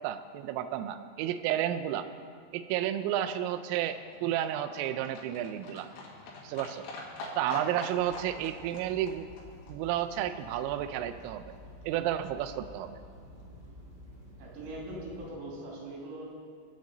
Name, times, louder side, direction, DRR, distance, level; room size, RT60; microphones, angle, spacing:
voice 1, 0.0-2.1 2.5-5.9 6.4-6.9 7.4-9.3 9.7-11.6 11.8-13.0, right 11 dB, 85° right, 9 dB, 3.2 m, -32 dB
Livestock farm animals working animals, 2.7-10.9 11.2-11.3 11.5-11.6 11.8-11.9 12.1-12.2 12.4-12.5 12.8-12.9 13.1-13.2 13.4-13.5, left 2 dB, 65° left, 3.7 m, -45 dB
sound 1, 7.9-15.3, equal, 35° right, 1.7 m, -51 dB
voice 2, 14.4-16.3, right 1 dB, 70° right, -4 dB, 5.0 m, -41 dB
25.0 x 8.5 x 3.9 m, 2.2 s
omnidirectional pair, 5.8 m